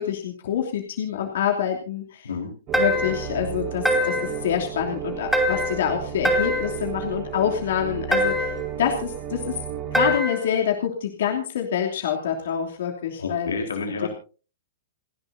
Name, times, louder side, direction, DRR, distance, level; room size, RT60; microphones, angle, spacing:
voice 1, 0.0-2.3 2.8-8.5 8.8-9.6 9.9-13.6 14.0-14.1, left 9 dB, 70° left, 1 dB, 2.9 m, -26 dB
sound 1, 2.7-3.3 3.8-4.4 5.3-5.9 6.2-6.8 8.1-8.7 9.9-10.5, left 1 dB, ahead, 3.2 m, -23 dB
sound 2, 2.7-10.2, right 10 dB, 40° right, 6.4 m, -33 dB
voice 2, 13.2-14.1, left 4 dB, 85° left, 3 dB, 4.0 m, -29 dB
29.0 x 11.0 x 2.7 m, 0.36 s
hypercardioid pair, 120°, 0 cm